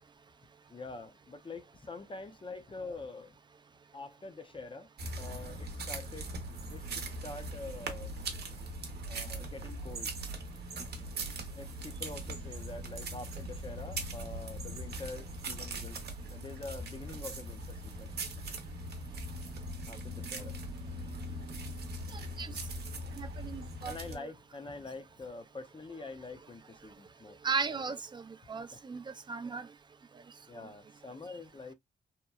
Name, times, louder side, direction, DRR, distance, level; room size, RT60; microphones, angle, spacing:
voice 1, 0.7-3.4 3.9-4.9 5.2-6.3 6.7-8.1 9.1-10.1 11.6-16.0 16.3-18.2 19.9-20.6 22.4-22.5 23.8-27.4 28.7-28.8 30.5-31.7, left 3 dB, 30° left, 0.5 m, -45 dB
sound 1, 5.0-24.2, right 1 dB, 65° right, 0.8 m, -40 dB
voice 2, 22.1-22.5 23.1-24.3 27.4-29.7, right 5 dB, 25° right, 0.4 m, -37 dB
2.8 x 2.1 x 2.3 m
cardioid pair, 75°, 18 cm